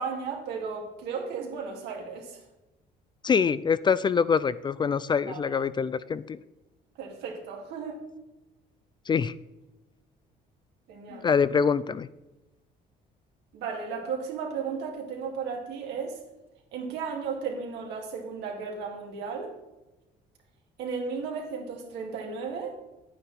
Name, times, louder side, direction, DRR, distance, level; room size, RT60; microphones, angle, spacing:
voice 1, 0.0-2.4 5.3-5.6 7.0-8.0 10.9-11.3 13.5-16.2 16.7-19.5 20.8-22.8, right 5 dB, 80° right, 1 dB, 2.5 m, -34 dB
voice 2, 3.2-6.4 9.1-9.3 11.1-12.1, left 6 dB, 25° left, 16 dB, 0.3 m, -25 dB
9.6 x 9.1 x 4.3 m, 1.0 s
cardioid pair, 110°, 17 cm